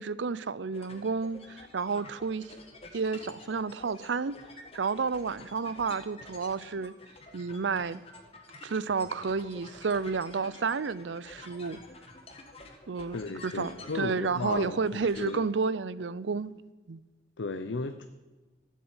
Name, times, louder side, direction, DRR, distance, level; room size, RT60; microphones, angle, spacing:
voice 1, 0.0-2.5 2.9-4.3 4.7-6.9 7.3-8.0 8.6-11.8 12.9-16.5 16.9-17.0, right 5 dB, 85° right, 19 dB, 0.5 m, -31 dB
sound 1, 0.7-15.4, left 2 dB, 30° left, 1.6 m, -49 dB
voice 2, 13.1-15.5 17.4-18.1, left 3 dB, 85° left, 9 dB, 0.7 m, -35 dB
14.5 x 7.4 x 8.7 m, 1.2 s
head